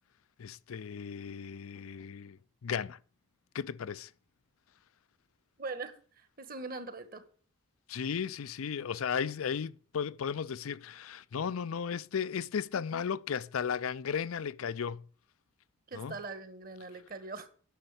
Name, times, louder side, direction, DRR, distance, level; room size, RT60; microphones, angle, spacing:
voice 1, 0.4-3.0 3.5-4.1 7.9-15.0 15.9-16.2, left 7 dB, 85° left, 0.5 m, -35 dB
voice 2, 5.6-7.2 15.9-17.5, right 3 dB, 45° right, 1.4 m, -42 dB
10.0 x 6.5 x 8.1 m
head